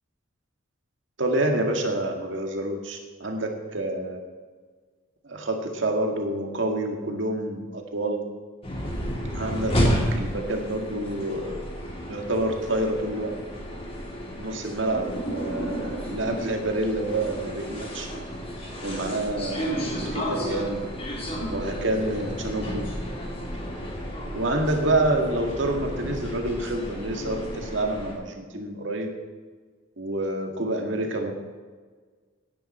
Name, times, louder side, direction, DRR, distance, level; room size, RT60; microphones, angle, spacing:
voice 1, 1.2-4.2 5.2-8.2 9.3-11.6 12.1-13.3 14.4-18.1 18.8-20.8 21.5-22.9 24.3-29.1 30.0-31.3, right 1 dB, 65° right, 3 dB, 2.0 m, -28 dB
sound 1, 8.6-28.1, equal, 30° left, 3.3 m, -31 dB
18.0 x 9.8 x 4.4 m, 1.5 s
head